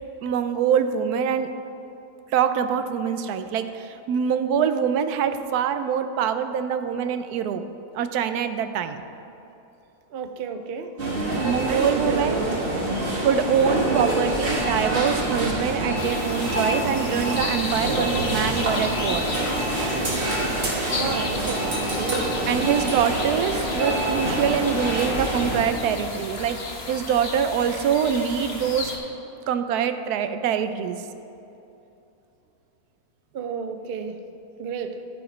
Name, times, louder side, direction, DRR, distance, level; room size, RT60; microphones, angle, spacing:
voice 1, 0.2-1.5 2.3-7.6 7.9-9.0 11.4-12.4 13.2-19.3 22.5-28.9 29.5-31.0, right 8 dB, 90° right, 9 dB, 1.1 m, -24 dB
voice 2, 10.1-12.6 13.8-14.1 20.9-22.8 33.3-34.2 34.6-35.0, right 5 dB, 60° right, 7 dB, 0.6 m, -32 dB
sound 1, 11.0-25.6, right 1 dB, 40° right, 1.6 m, -26 dB
sound 2, 16.0-29.0, left 3 dB, 45° left, 1.4 m, -34 dB
13.5 x 5.1 x 5.0 m, 2.9 s
omnidirectional pair, 1.6 m